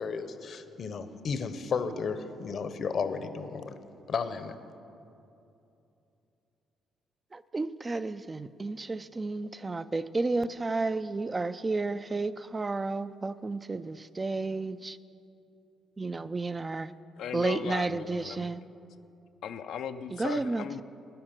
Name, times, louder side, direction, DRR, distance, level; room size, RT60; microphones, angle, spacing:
voice 1, 0.0-3.8 4.1-4.6, left 5 dB, 55° left, 11 dB, 0.8 m, -33 dB
voice 2, 7.5-15.0 16.0-16.9 17.3-18.6 20.2-20.8, right 3 dB, 25° right, 13 dB, 0.3 m, -32 dB
voice 3, 17.2-18.5 19.4-20.8, left 8 dB, 80° left, 8 dB, 0.4 m, -37 dB
11.5 x 9.7 x 7.4 m, 2.7 s
cardioid pair, 90°, 0 cm